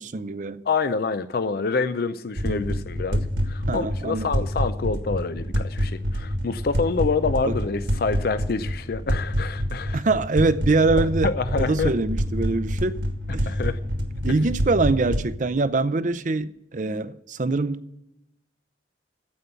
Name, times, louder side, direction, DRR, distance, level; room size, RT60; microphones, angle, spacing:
voice 1, 0.0-0.6 2.4-2.8 3.7-4.5 7.4-7.6 9.9-13.0 13.3-13.5 14.2-17.8, right 3 dB, 45° right, 0.6 m, -24 dB
voice 2, 0.7-10.0 11.2-11.9 13.5-13.8, left 4 dB, 60° left, 0.5 m, -27 dB
sound 1, 2.4-15.3, equal, 70° right, 1.8 m, -27 dB
15.0 x 5.4 x 9.1 m
head